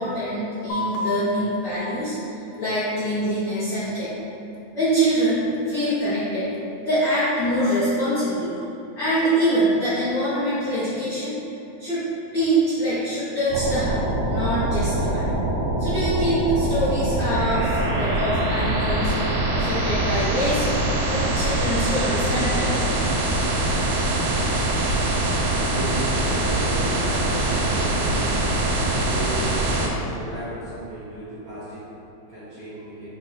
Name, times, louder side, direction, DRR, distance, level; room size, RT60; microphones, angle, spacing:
voice 1, 0.0-4.1 4.7-6.5 6.8-8.7 9.0-11.4 11.8-12.1 12.3-14.0 14.2-15.2 15.8-19.1 19.5-20.6 21.0-22.9, right 1 dB, 70° left, -13 dB, 1.0 m, -24 dB
sound 1, 0.7-7.7, left 2 dB, 90° left, 1.3 m, -38 dB
sound 2, 13.5-29.9, right 2 dB, 85° right, 2.0 m, -23 dB
voice 2, 24.3-33.1, right 1 dB, 70° right, -12 dB, 1.2 m, -36 dB
5.3 x 2.3 x 4.2 m, 2.9 s
omnidirectional pair, 3.5 m